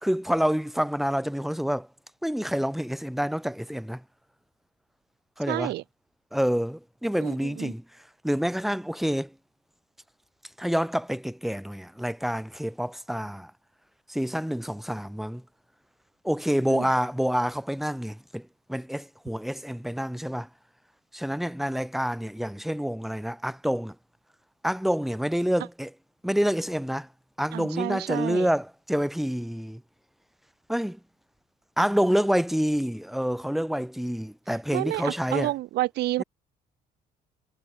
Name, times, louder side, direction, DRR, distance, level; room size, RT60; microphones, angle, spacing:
voice 1, 0.0-1.9 2.2-4.0 5.4-5.7 6.3-7.8 8.2-9.3 10.6-13.5 14.1-15.4 16.2-20.5 21.1-23.9 24.6-25.9 26.2-27.1 27.4-29.8 30.7-31.0 31.8-35.5, equal, ahead, 4.1 m, -27 dB
voice 2, 5.5-5.8 7.2-7.7 16.7-16.9 27.5-28.5 34.7-36.2, right 16 dB, 80° right, 1.6 m, -29 dB
cardioid pair, 110°, 17 cm